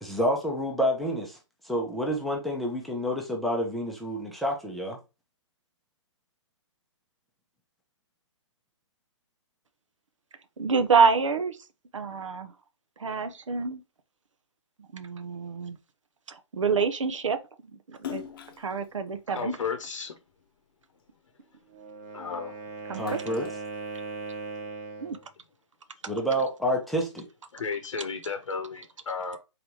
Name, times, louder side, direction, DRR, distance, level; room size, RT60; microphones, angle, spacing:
voice 1, 0.0-1.4 1.6-5.0 22.9-23.5 26.1-27.3, equal, ahead, 0.6 m, -28 dB
voice 2, 10.6-11.6 11.9-12.5 13.0-13.8 14.9-15.8 16.3-17.4 17.7-18.2 18.6-19.6 22.9-23.2 25.0-25.2, right 5 dB, 80° right, 0.8 m, -27 dB
Splash splatter, 17.9-20.5 21.0-22.4 22.8-24.5, left 10 dB, 45° left, 0.7 m, -43 dB
voice 3, 19.0-20.2 22.1-22.6 27.5-29.4, left 5 dB, 80° left, 0.8 m, -34 dB
Wind instrument woodwind instrument, 21.7-25.2, right 4 dB, 35° right, 1.0 m, -39 dB
4.0 x 3.3 x 2.9 m
hypercardioid pair, 150°, 16 cm